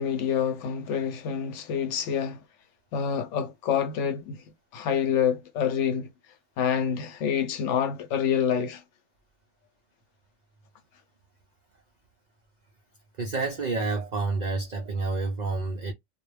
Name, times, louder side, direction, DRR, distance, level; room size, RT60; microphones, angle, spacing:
voice 1, 0.0-2.4 2.9-4.4 4.7-6.1 6.6-8.8, left 8 dB, 70° left, 0.9 m, -27 dB
voice 2, 13.2-15.9, right 3 dB, 90° right, 0.3 m, -29 dB
2.3 x 2.0 x 3.2 m
omnidirectional pair, 1.4 m